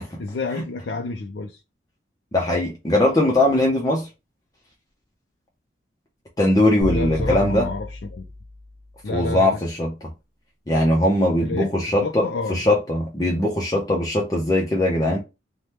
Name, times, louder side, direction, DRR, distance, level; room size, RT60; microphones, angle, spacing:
voice 1, 0.2-1.6 6.9-8.2 9.0-9.6 11.4-12.6, left 3 dB, 75° left, 0.5 m, -30 dB
voice 2, 2.3-4.1 6.4-7.7 9.1-9.9 10.7-15.2, left 1 dB, 20° left, 0.6 m, -20 dB
sound 1, 6.8-8.9, left 1 dB, 5° left, 0.9 m, -31 dB
3.3 x 2.2 x 2.8 m
head